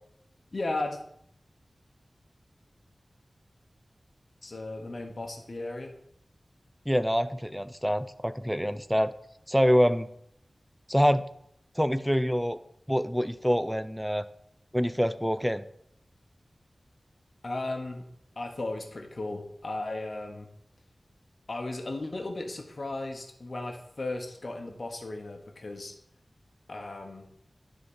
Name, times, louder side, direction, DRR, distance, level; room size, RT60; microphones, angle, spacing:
voice 1, 0.5-1.0 4.4-5.9 17.4-18.1 18.4-20.5 21.5-25.9 26.7-27.3, left 2 dB, 55° left, 3 dB, 1.0 m, -35 dB
voice 2, 6.9-9.1 9.5-10.1 10.9-11.2 11.8-12.6 12.9-14.2 14.7-15.6, equal, ahead, 13 dB, 0.4 m, -25 dB
9.5 x 3.8 x 5.5 m, 0.71 s
wide cardioid pair, 85°, 0 cm